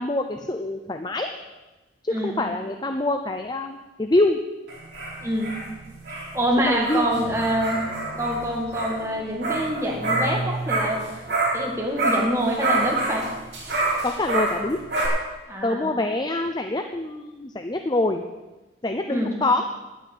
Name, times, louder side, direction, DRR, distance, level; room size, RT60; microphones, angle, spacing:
voice 1, 0.0-1.3 2.0-4.4 6.7-7.3 14.0-14.8 15.6-18.2 18.8-19.6, left 2 dB, 25° left, 5 dB, 0.7 m, -25 dB
voice 2, 2.1-2.5 5.2-5.5 6.3-7.8 8.2-11.0 11.5-13.2 15.5-15.9 19.1-19.4, equal, 15° right, -1 dB, 2.0 m, -26 dB
sound 1, 4.7-11.7 12.0-15.1, right 2 dB, 60° right, 5.2 m, -27 dB
9.9 x 9.5 x 9.2 m, 1.1 s
head